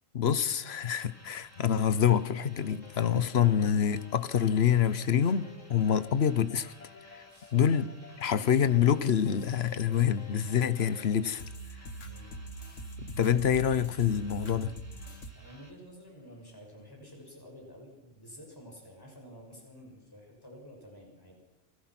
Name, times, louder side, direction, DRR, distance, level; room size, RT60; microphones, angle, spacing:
voice 1, 0.1-6.7 7.1-7.2 7.5-7.9 8.2-11.4 13.0-14.7, left 8 dB, 60° left, 1.2 m, -26 dB
sound 1, 0.9-15.7, equal, 10° right, 3.4 m, -58 dB
sound 2, 1.9-15.3, equal, 80° left, 2.0 m, -47 dB
voice 2, 7.3-7.8 12.0-12.3 15.3-21.4, equal, 15° left, 6.5 m, -50 dB
28.5 x 23.5 x 6.0 m
omnidirectional pair, 1.3 m